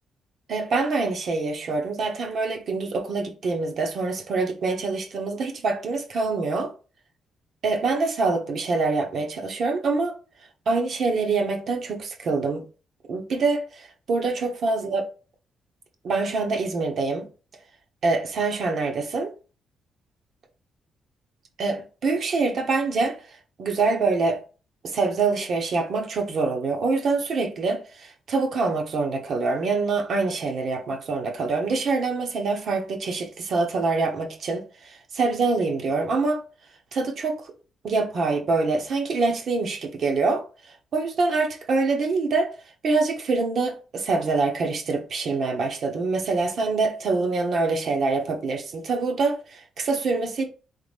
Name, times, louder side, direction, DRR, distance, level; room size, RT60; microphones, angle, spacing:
voice 1, 0.5-6.7 7.6-10.1 10.7-12.7 13.1-15.0 16.0-17.3 18.0-19.3 21.6-23.2 23.6-24.4 24.8-36.4 36.9-37.5 37.8-40.4 40.9-42.6 42.8-50.4, right 3 dB, 60° right, 1.0 m, -25 dB
3.8 x 3.2 x 3.4 m
cardioid pair, 85°, 0 cm